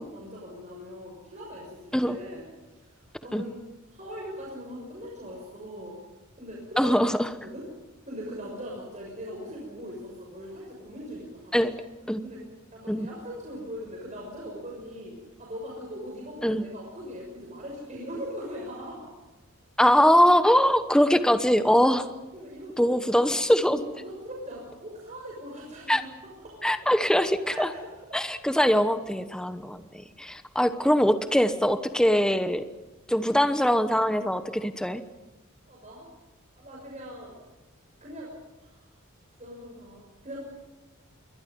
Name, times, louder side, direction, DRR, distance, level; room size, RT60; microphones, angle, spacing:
voice 1, 0.0-3.5 3.9-6.0 6.4-6.9 7.4-7.6 8.0-11.7 12.2-12.4 12.7-19.1 22.3-23.0 23.6-26.1 26.4-26.7 27.5-27.8 35.7-36.1 36.6-37.4 38.0-38.3 38.6-39.0 39.4-40.4, equal, 35° right, -2 dB, 6.4 m, -40 dB
voice 2, 6.8-7.3 11.5-11.7 12.1-12.2 12.9-13.1 16.4-16.6 19.8-22.0 22.8-23.8 25.9-26.0 26.6-27.7 28.1-32.6 33.1-35.0, equal, 5° left, 9 dB, 1.0 m, -22 dB
27.5 x 23.5 x 5.4 m, 1.1 s
head